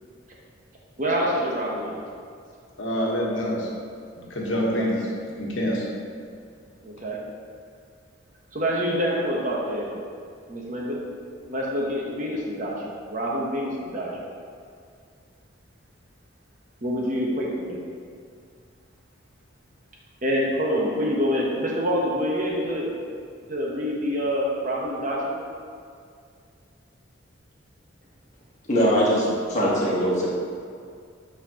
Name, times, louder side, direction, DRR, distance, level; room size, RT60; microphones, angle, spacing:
voice 1, 1.0-1.9 4.6-4.9 6.8-7.2 8.5-9.9 10.5-11.0 11.5-12.8 13.1-14.1 16.8-17.8 20.2-22.9 23.5-25.4, equal, 40° right, -3 dB, 1.0 m, -26 dB
voice 2, 2.8-3.7 4.2-5.0 5.4-5.8, equal, 70° left, -4 dB, 1.3 m, -26 dB
voice 3, 28.7-30.3, equal, 35° left, -7 dB, 1.4 m, -21 dB
8.6 x 4.3 x 2.9 m, 2.3 s
head